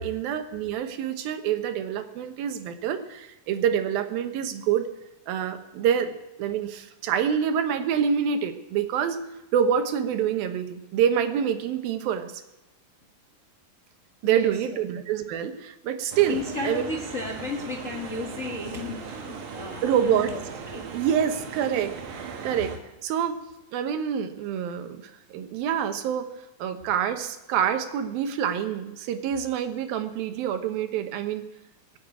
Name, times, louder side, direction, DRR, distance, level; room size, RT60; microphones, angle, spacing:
voice 1, 0.0-4.9 5.3-9.2 9.5-12.3 14.2-16.8 19.8-20.3 20.9-22.7 23.0-23.4 23.7-26.3 26.6-31.5, right 8 dB, 90° right, 8 dB, 2.9 m, -26 dB
voice 2, 14.2-14.8 16.3-20.4 20.7-20.8, left 3 dB, 70° left, 0 dB, 0.7 m, -34 dB
sound 1, 16.1-22.8, right 5 dB, 60° right, 3.0 m, -38 dB
19.5 x 8.0 x 8.8 m, 0.94 s
omnidirectional pair, 4.1 m